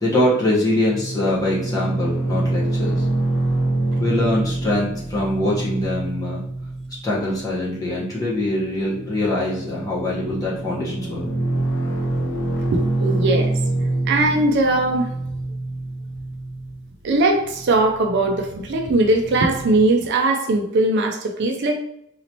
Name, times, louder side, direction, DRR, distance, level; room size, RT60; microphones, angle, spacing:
voice 1, 0.0-3.0 4.0-6.4 7.0-11.3, left 1 dB, 20° left, -7 dB, 1.2 m, -23 dB
sound 1, 0.9-19.9, right 2 dB, 60° left, 0.8 m, -26 dB
voice 2, 12.7-13.5 14.1-15.1 17.0-21.8, right 2 dB, 55° right, 4 dB, 0.4 m, -20 dB
4.0 x 2.8 x 2.9 m, 0.76 s
head